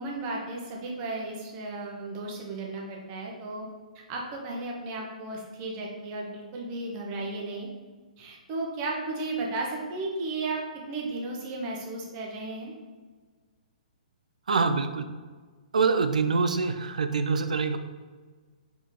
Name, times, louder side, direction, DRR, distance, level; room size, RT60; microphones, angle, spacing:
voice 1, 0.0-3.7 3.9-7.7 8.2-10.6 10.9-12.7, right 2 dB, 30° right, -1 dB, 0.9 m, -34 dB
voice 2, 14.5-15.1 15.7-17.8, right 4 dB, 65° right, 9 dB, 0.4 m, -25 dB
4.1 x 3.7 x 3.1 m, 1.4 s
figure-of-eight pair, 125°, 4 cm